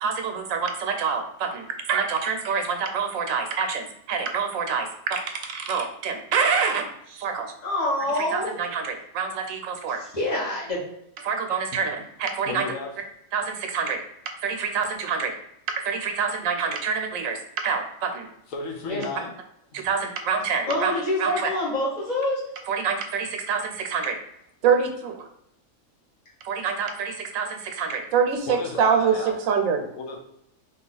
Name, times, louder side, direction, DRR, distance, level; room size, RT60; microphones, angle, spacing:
voice 1, 0.0-7.5 8.2-10.0 11.2-12.7 13.3-14.0 14.4-15.3 15.7-18.3 19.7-20.9 21.2-21.5 22.7-24.2 24.6-25.1 26.4-29.8, right 6 dB, 85° right, 5 dB, 1.0 m, -26 dB
voice 2, 7.6-8.5 10.1-10.8 18.9-19.0 20.7-22.4, left 1 dB, 35° left, -5 dB, 1.1 m, -26 dB
voice 3, 12.4-12.9 18.5-19.3 28.5-29.3 29.9-30.2, left 3 dB, 85° left, 2 dB, 1.1 m, -33 dB
2.8 x 2.3 x 3.9 m, 0.78 s
omnidirectional pair, 1.4 m